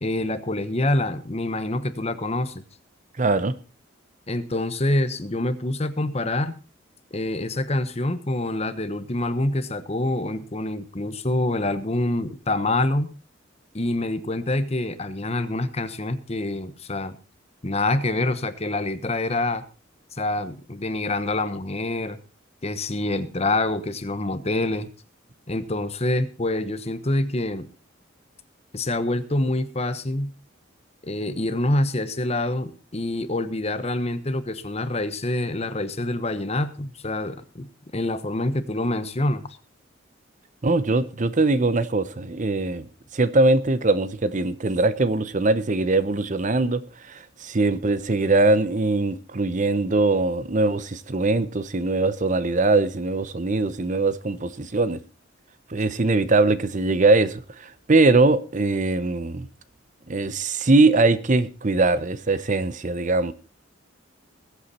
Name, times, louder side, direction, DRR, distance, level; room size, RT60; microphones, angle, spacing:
voice 1, 0.0-2.6 4.3-6.6 7.1-13.1 13.7-17.2 17.6-19.6 20.1-22.2 22.6-24.9 25.5-27.7 28.7-30.3 31.0-37.7 37.9-39.5, left 2 dB, 30° left, 1.1 m, -26 dB
voice 2, 3.2-3.5 40.6-42.9 43.1-46.8 47.1-55.0 55.7-59.5 60.1-63.3, right 3 dB, 40° right, 0.7 m, -21 dB
20.5 x 8.3 x 4.2 m
head